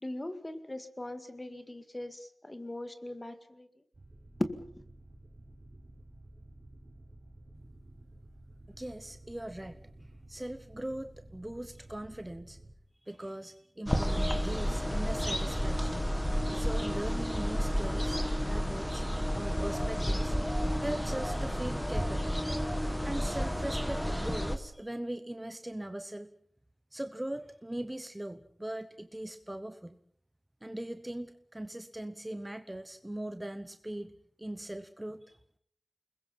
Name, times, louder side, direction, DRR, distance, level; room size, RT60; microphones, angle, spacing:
voice 1, 0.0-3.7 4.4-4.8, left 1 dB, 20° left, 9 dB, 2.1 m, -39 dB
sound 1, 3.9-12.7, right 1 dB, 40° right, 4.9 m, -53 dB
voice 2, 8.8-12.6 13.0-16.0 16.5-18.2 18.4-19.1 19.3-20.4 20.8-22.4 23.0-26.3 26.9-30.0 30.6-34.1 34.4-35.4, right 1 dB, 15° right, 10 dB, 1.0 m, -40 dB
sound 2, 13.9-24.6, equal, 5° left, 1.7 m, -31 dB
29.5 x 21.0 x 5.7 m, 0.66 s
wide cardioid pair, 105°, 0 cm